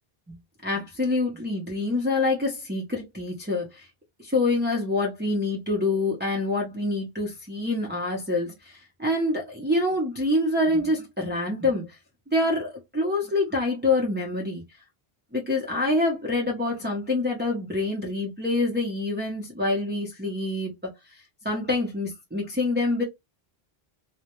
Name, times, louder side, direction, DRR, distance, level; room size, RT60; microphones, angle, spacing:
voice 1, 0.6-3.9 4.2-12.0 12.3-14.6 15.3-20.7 21.1-23.0, left 2 dB, 15° right, 0.5 m, -26 dB
2.2 x 2.1 x 2.9 m
omnidirectional pair, 1.0 m